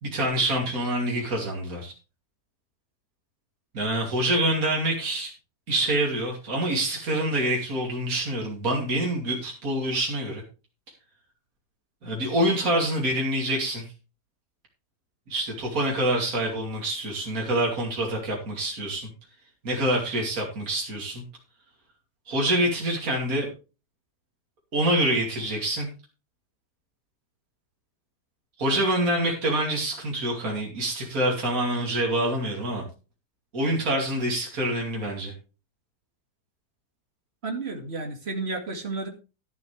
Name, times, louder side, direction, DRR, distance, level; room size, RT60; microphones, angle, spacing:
voice 1, 0.0-1.9 3.7-5.3 5.7-10.4 12.0-13.9 15.3-19.1 19.6-21.2 22.3-23.5 24.7-25.9 28.6-32.8 33.5-35.3, right 1 dB, 60° right, -1 dB, 3.2 m, -26 dB
voice 2, 37.4-39.1, right 3 dB, 40° right, 3 dB, 2.4 m, -32 dB
12.0 x 11.5 x 3.3 m, 0.32 s
omnidirectional pair, 1.7 m